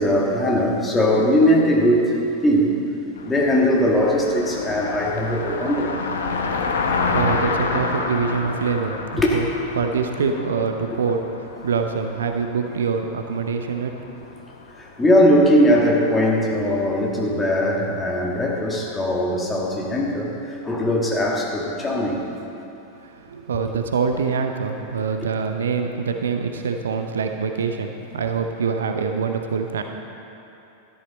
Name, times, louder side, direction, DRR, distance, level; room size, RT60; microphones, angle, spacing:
voice 1, 0.0-2.1 2.4-2.8 3.3-6.1 9.2-9.4 14.8-22.3, equal, 15° left, -3 dB, 2.1 m, -20 dB
Car passing by, 3.2-15.5, left 4 dB, 65° left, 1.0 m, -29 dB
voice 2, 6.8-9.5 9.8-14.3 23.0-29.8, right 5 dB, 65° right, 5 dB, 0.7 m, -25 dB
13.0 x 11.0 x 4.3 m, 2.8 s
figure-of-eight pair, 90°, 0 cm